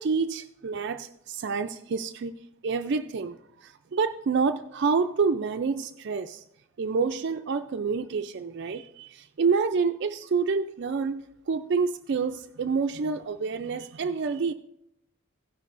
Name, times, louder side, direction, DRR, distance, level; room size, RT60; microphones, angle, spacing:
voice 1, 0.0-2.3 2.6-6.4 6.8-14.5, right 5 dB, 55° right, 7 dB, 0.4 m, -28 dB
16.0 x 12.0 x 2.5 m, 0.78 s
head